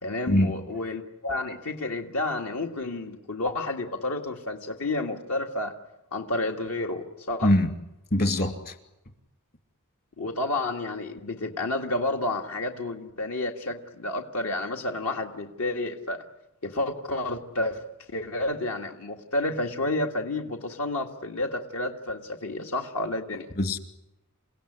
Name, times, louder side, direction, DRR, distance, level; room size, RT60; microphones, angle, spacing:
voice 1, 0.0-5.7 6.1-7.5 10.2-16.2 16.6-17.8 18.1-23.5, left 2 dB, 70° left, 2 dB, 1.9 m, -30 dB
voice 2, 8.1-8.8 23.6-23.8, left 1 dB, 45° left, 7 dB, 2.6 m, -22 dB
29.0 x 17.0 x 10.0 m, 0.94 s
head